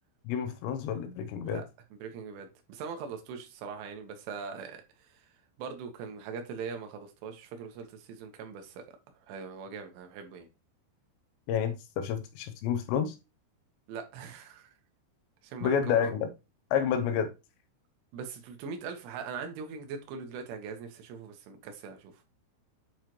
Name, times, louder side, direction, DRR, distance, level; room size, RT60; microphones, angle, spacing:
voice 1, 0.2-1.6 11.5-13.2 15.6-16.3 16.7-17.3, left 8 dB, 80° left, 2.8 m, -29 dB
voice 2, 1.9-5.3 5.6-8.8 9.3-10.5 13.9-14.7 15.4-16.0 18.1-22.2, right 5 dB, 80° right, 3.7 m, -41 dB
8.8 x 4.9 x 3.0 m
omnidirectional pair, 5.6 m